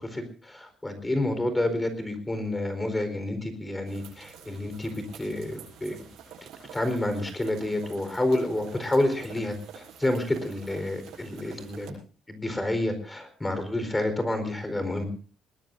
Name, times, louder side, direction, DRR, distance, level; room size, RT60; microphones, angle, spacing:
voice 1, 0.0-6.0 6.7-11.9 12.3-15.0, left 1 dB, 15° left, 9 dB, 4.4 m, -29 dB
sound 1, 3.9-11.9, right 7 dB, 75° right, 7.9 m, -47 dB
22.0 x 19.0 x 2.7 m, 0.39 s
cardioid pair, 100°, 0 cm